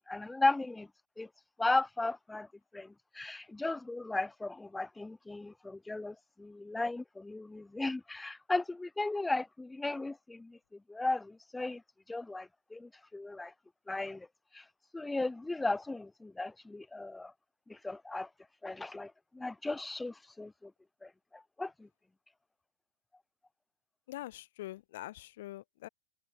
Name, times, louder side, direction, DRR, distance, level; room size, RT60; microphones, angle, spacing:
voice 1, 0.1-0.9 1.2-1.3 1.6-2.5 2.7-10.6 10.9-11.8 12.1-13.5 13.9-14.3 14.5-14.6 14.9-17.3 17.7-18.3 18.6-20.7 21.0-21.9, left 2 dB, 5° left, 0.4 m, -36 dB
voice 2, 24.1-25.9, left 16 dB, 60° left, 1.5 m, -44 dB
supercardioid pair, 155°, 0 cm